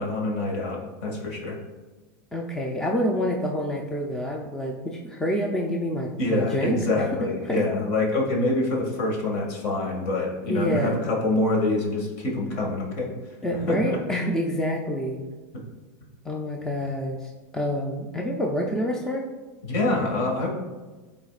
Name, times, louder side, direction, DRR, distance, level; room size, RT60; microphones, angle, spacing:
voice 1, 0.0-1.6 6.2-13.1 13.7-14.0 19.6-20.5, left 2 dB, 55° left, 0 dB, 2.1 m, -26 dB
voice 2, 2.3-7.0 7.4-7.6 10.5-11.0 13.4-15.3 16.2-19.3, equal, 5° left, 0 dB, 0.5 m, -27 dB
12.0 x 4.3 x 2.5 m, 1.3 s
supercardioid pair, 145°, 10 cm